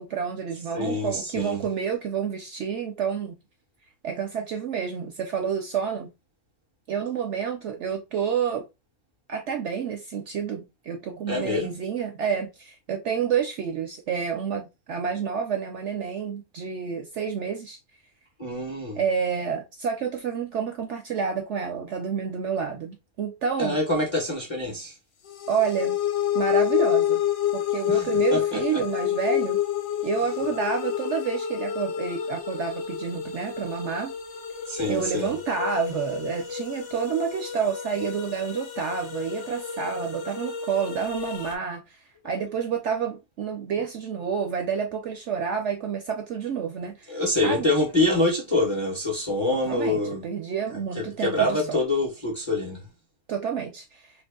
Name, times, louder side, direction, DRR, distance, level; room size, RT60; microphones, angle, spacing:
voice 1, 0.0-3.4 4.0-6.1 6.9-8.7 9.3-17.8 19.0-23.8 25.5-26.0 26.3-27.2 27.5-29.6 30.0-34.1 34.9-42.0 42.2-47.7 49.7-51.8 53.3-54.1, right 7 dB, 65° right, 0.7 m, -29 dB
voice 2, 0.7-1.6 11.3-11.7 18.4-19.0 23.6-24.9 27.9-28.8 34.7-35.3 47.1-50.2 50.9-52.8, left 1 dB, 25° left, 0.7 m, -26 dB
sound 1, 25.2-41.5, left 10 dB, 60° left, 0.9 m, -29 dB
2.9 x 2.6 x 3.5 m
omnidirectional pair, 1.6 m